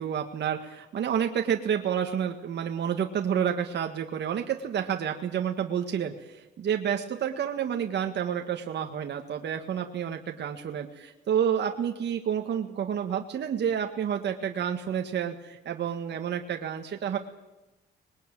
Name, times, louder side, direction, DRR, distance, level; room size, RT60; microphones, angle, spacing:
voice 1, 0.0-17.2, right 8 dB, 60° right, 4 dB, 1.8 m, -29 dB
24.5 x 20.5 x 9.2 m, 1.0 s
cardioid pair, 90°, 20 cm